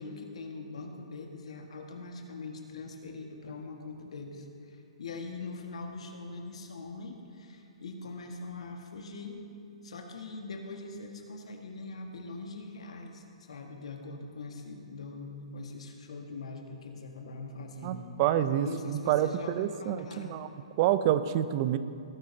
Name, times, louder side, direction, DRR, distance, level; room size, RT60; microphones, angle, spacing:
voice 1, 0.0-9.4 9.8-18.1 18.6-20.3 20.8-20.9, left 3 dB, 75° left, 3 dB, 1.5 m, -42 dB
voice 2, 17.8-20.5 20.8-21.8, right 11 dB, 40° right, 12 dB, 0.5 m, -28 dB
17.5 x 10.0 x 2.8 m, 2.6 s
hypercardioid pair, 135°, 3 cm